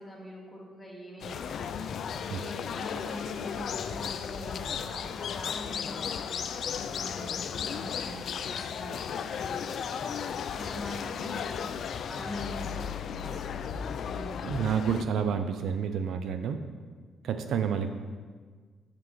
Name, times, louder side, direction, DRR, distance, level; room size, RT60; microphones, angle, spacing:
voice 1, 0.0-11.7 12.1-14.7, left 1 dB, 15° left, -3 dB, 2.2 m, -43 dB
sound 1, 1.2-15.0, left 7 dB, 65° left, 0.3 m, -35 dB
voice 2, 14.4-16.6 17.2-17.9, right 7 dB, 70° right, 8 dB, 0.4 m, -29 dB
7.5 x 6.8 x 3.1 m, 1.5 s
supercardioid pair, 60°, 0 cm